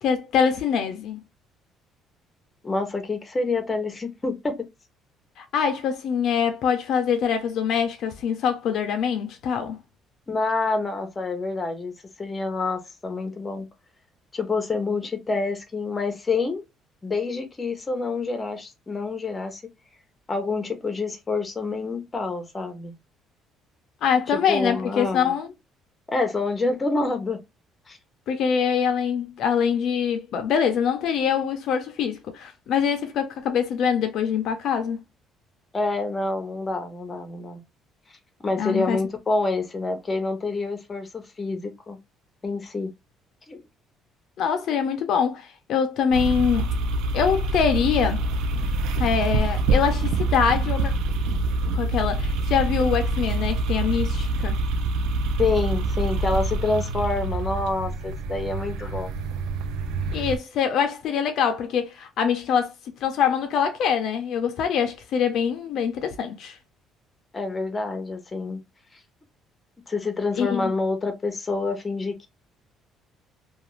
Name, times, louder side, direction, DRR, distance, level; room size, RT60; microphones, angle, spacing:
voice 1, 0.0-1.2 5.4-9.8 24.0-25.5 28.3-35.0 38.6-39.0 44.4-46.7 47.1-48.2 49.0-50.9 51.7-54.6 60.1-62.7 63.0-66.6 70.4-70.7, left 7 dB, 55° left, 0.4 m, -24 dB
voice 2, 2.6-4.6 10.3-11.9 12.2-13.7 14.3-16.6 17.0-19.6 20.3-22.9 24.3-25.3 26.1-27.4 27.9-28.0 35.7-37.6 38.4-42.0 42.4-42.9 43.5-43.6 55.4-59.1 67.3-68.6 69.9-72.3, left 3 dB, 20° left, 0.6 m, -27 dB
sound 1, 46.1-60.4, right 2 dB, 90° right, 0.4 m, -26 dB
2.4 x 2.3 x 3.0 m
cardioid pair, 155°, 0 cm